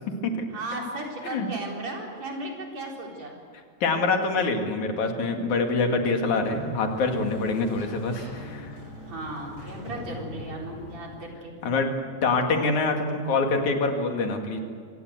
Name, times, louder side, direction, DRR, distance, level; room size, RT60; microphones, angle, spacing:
voice 1, 0.5-3.4 9.1-11.6, right 1 dB, 65° right, 0 dB, 5.3 m, -35 dB
voice 2, 3.8-8.7 11.6-14.6, left 3 dB, 80° left, 4 dB, 3.6 m, -25 dB
Sliding door, 6.1-11.4, left 1 dB, 55° left, 6.5 m, -42 dB
25.0 x 19.0 x 8.2 m, 2.1 s
omnidirectional pair, 3.4 m